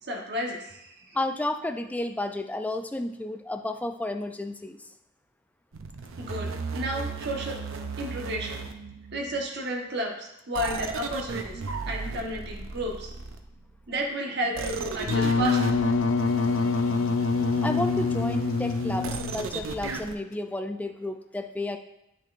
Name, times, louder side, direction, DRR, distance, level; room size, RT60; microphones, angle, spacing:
voice 1, 0.0-1.2 6.2-7.6 8.0-8.6 9.1-11.6 11.9-13.1 13.9-15.8, right 1 dB, 55° right, 0 dB, 1.2 m, -32 dB
voice 2, 1.1-4.8 17.6-21.8, left 1 dB, 5° left, 6 dB, 0.3 m, -32 dB
sound 1, 5.7-9.4 10.5-13.6 14.5-20.2, right 4 dB, 75° right, 0.6 m, -36 dB
Wind instrument woodwind instrument, 15.0-19.6, left 4 dB, 70° left, 0.5 m, -25 dB
8.5 x 6.4 x 2.5 m, 0.84 s
head